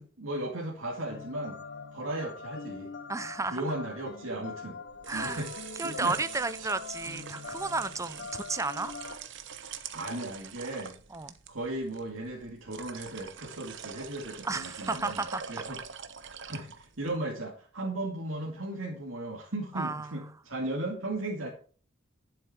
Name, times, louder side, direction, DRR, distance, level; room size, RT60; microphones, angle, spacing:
voice 1, 0.0-1.6 1.9-2.9 3.5-4.8 5.1-5.5 5.8-6.2 6.6-6.7 9.9-11.0 11.5-15.8 16.4-21.5, right 1 dB, 85° right, 2.3 m, -36 dB
sound 1, 1.1-9.2, left 4 dB, 60° left, 0.9 m, -43 dB
voice 2, 3.1-3.6 5.1-5.4 5.8-8.9 11.1-11.3 14.4-15.4 19.7-20.1, right 3 dB, 15° right, 0.6 m, -32 dB
sound 2, 4.8-17.2, right 7 dB, 65° right, 1.0 m, -44 dB
11.5 x 7.4 x 4.4 m
head